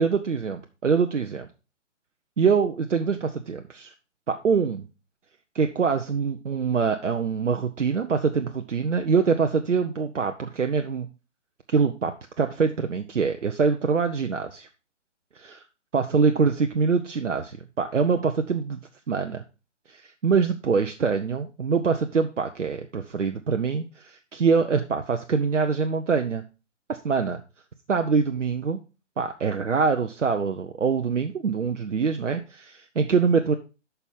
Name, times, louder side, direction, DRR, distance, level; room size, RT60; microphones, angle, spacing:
voice 1, 0.0-1.5 2.4-3.9 4.3-4.8 5.5-11.1 11.7-14.7 15.4-15.6 15.9-18.8 19.1-19.4 19.9-26.4 27.0-27.4 27.9-28.8 29.2-33.5, right 5 dB, 75° right, 6 dB, 0.8 m, -24 dB
8.1 x 5.7 x 3.5 m, 0.30 s
figure-of-eight pair, 130°, 37 cm